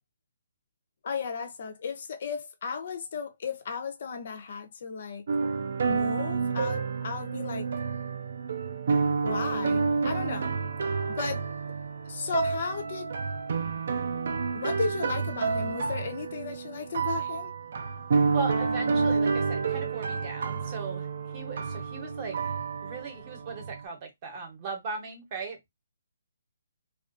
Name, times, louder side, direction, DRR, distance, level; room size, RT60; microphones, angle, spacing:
voice 1, 1.0-5.2 5.9-7.7 9.2-10.5 11.1-11.5 12.1-13.1 14.5-17.5, left 5 dB, 50° left, 0.5 m, -35 dB
sound 1, 5.3-23.8, right 5 dB, 55° right, 0.4 m, -29 dB
voice 2, 18.3-22.5 22.8-25.6, right 4 dB, 30° right, 0.8 m, -38 dB
2.4 x 2.3 x 2.5 m
hypercardioid pair, 165°, 0 cm